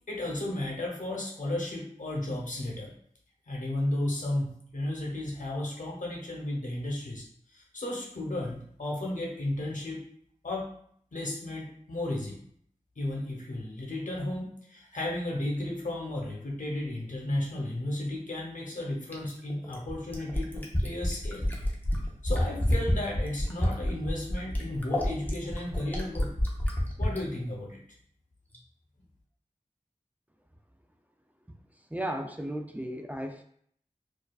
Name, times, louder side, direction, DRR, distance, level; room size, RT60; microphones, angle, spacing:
voice 1, 0.1-2.9 3.5-7.2 7.5-10.0 10.4-10.7 11.1-12.4 13.0-21.5 22.2-26.3 27.0-27.8, left 1 dB, 80° left, -1 dB, 0.9 m, -34 dB
Fill (with liquid), 19.1-27.2 28.5-28.6, left 1 dB, 15° left, 0.8 m, -28 dB
voice 2, 31.9-33.4, right 1 dB, 10° right, 4 dB, 0.4 m, -35 dB
4.5 x 2.4 x 2.3 m, 0.63 s
wide cardioid pair, 50°, 13 cm